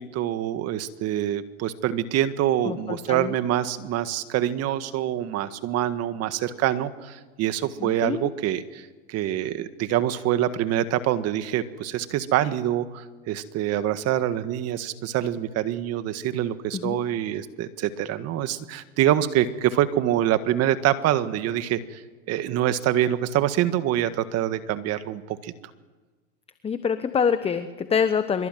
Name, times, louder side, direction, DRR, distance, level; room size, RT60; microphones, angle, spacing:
voice 1, 0.0-22.0 22.3-25.5, right 12 dB, 35° right, 11 dB, 1.7 m, -25 dB
voice 2, 2.6-3.3 7.8-8.3 16.7-17.0 26.6-28.5, left 6 dB, 15° left, 11 dB, 1.1 m, -26 dB
25.0 x 24.0 x 9.3 m, 1.3 s
hypercardioid pair, 125°, 42 cm